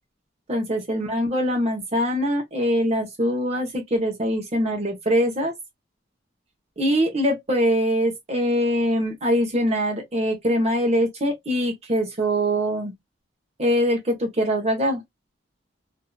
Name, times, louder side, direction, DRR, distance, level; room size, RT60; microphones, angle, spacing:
voice 1, 0.5-5.5 6.8-12.9 13.6-15.0, equal, 35° right, 0.9 m, -23 dB
2.7 x 2.7 x 2.2 m
head